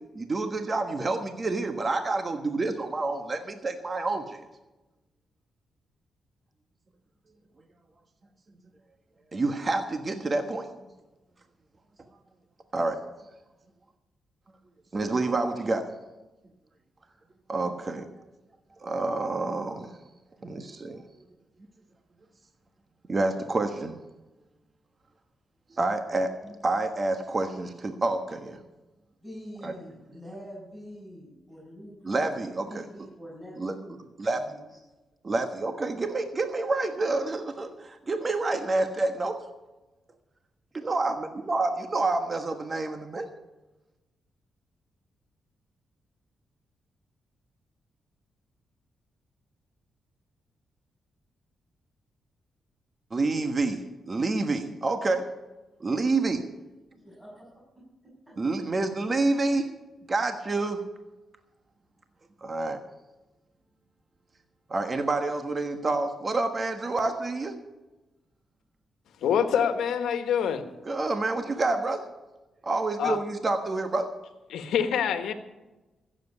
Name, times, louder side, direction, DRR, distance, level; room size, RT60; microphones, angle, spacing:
voice 1, 0.1-4.5 9.3-10.7 12.7-13.0 14.9-15.9 17.5-18.1 18.8-19.9 20.4-21.0 23.1-24.0 25.7-28.6 29.6-29.7 32.0-32.8 33.6-33.7 34.2-34.4 35.2-39.4 40.7-43.3 53.1-55.2 55.8-56.4 58.4-59.7 60.1-60.8 62.4-62.8 64.7-67.6 70.8-72.1 72.6-74.1, right 3 dB, 35° right, 7 dB, 1.3 m, -28 dB
voice 2, 29.2-32.4 32.6-34.1 34.4-34.8 57.0-57.5 57.7-58.5, equal, 20° right, -6 dB, 6.3 m, -45 dB
voice 3, 69.2-70.6 73.0-73.2 74.5-75.3, left 8 dB, 85° left, 9 dB, 1.3 m, -25 dB
15.0 x 7.7 x 8.4 m, 1.1 s
cardioid pair, 70°, 0 cm